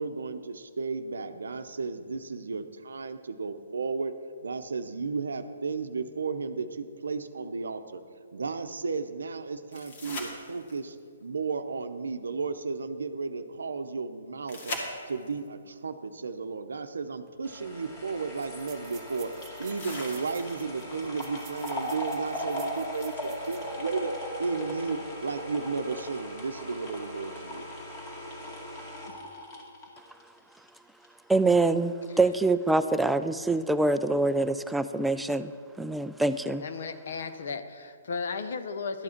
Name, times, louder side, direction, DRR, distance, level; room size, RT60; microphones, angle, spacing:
voice 1, 0.0-4.1 4.4-8.0 8.3-11.0 11.2-14.8 15.1-19.3 19.6-24.1 24.4-27.7, right 4 dB, 80° right, 8 dB, 0.7 m, -34 dB
sound 1, 9.7-11.0 14.5-15.5 17.4-17.5 19.7-20.8 23.7-23.8, left 2 dB, 50° left, 2.2 m, -39 dB
sound 2, 17.3-17.4 17.5-17.6 18.3-23.8 24.2-24.3 24.7-24.9, right 9 dB, 20° right, 1.3 m, -53 dB
sound 3, 17.5-30.7 31.0-31.1, equal, 25° left, 2.2 m, -38 dB
voice 2, 31.3-35.5 35.8-36.6, right 2 dB, 5° right, 11 dB, 0.3 m, -25 dB
voice 3, 36.6-39.0, left 5 dB, 65° left, 10 dB, 0.8 m, -35 dB
12.0 x 8.5 x 4.4 m, 2.1 s
hypercardioid pair, 140°, 0 cm